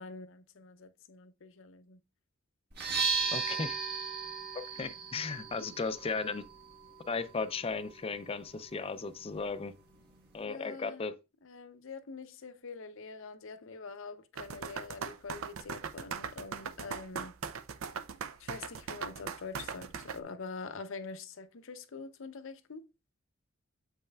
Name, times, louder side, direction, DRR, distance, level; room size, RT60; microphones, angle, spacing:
voice 1, 0.0-2.0 5.6-5.7 10.4-11.0 11.4-17.3 18.4-22.9, left 4 dB, 70° left, 0.7 m, -45 dB
sound 1, 2.7-10.5, right 5 dB, 50° right, 1.4 m, -38 dB
voice 2, 3.3-3.8 4.7-6.4 7.1-9.7 10.3-11.1, left 4 dB, 30° left, 0.5 m, -36 dB
sound 2, 14.4-20.2, right 6 dB, 70° right, 0.5 m, -39 dB
7.5 x 5.4 x 2.3 m
head